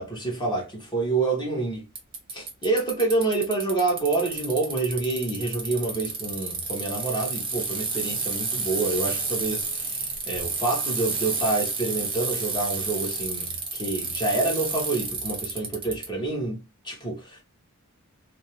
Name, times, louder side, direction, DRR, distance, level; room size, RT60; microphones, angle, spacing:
voice 1, 0.0-1.9 2.3-17.4, right 3 dB, 20° left, 0.9 m, -28 dB
Bicycle, 2.0-16.1, right 4 dB, 25° right, 0.7 m, -30 dB
2.5 x 2.0 x 2.9 m
head